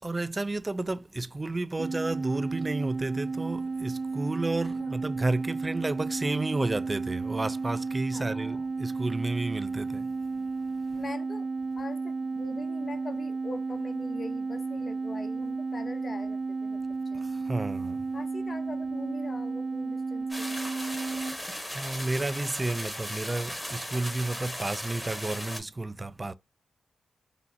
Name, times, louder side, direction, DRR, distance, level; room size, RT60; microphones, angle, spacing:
voice 1, 0.0-10.1 17.1-18.0 21.1-26.3, right 2 dB, 30° right, 0.3 m, -32 dB
sound 1, 1.8-21.4, right 4 dB, 80° right, 0.5 m, -33 dB
voice 2, 8.1-8.7 10.9-11.5 11.7-16.8 17.1-17.2 18.1-20.7, left 3 dB, 50° left, 0.6 m, -42 dB
sound 2, 20.3-25.6, equal, 10° left, 1.0 m, -37 dB
3.9 x 2.0 x 2.6 m
supercardioid pair, 50°, 0 cm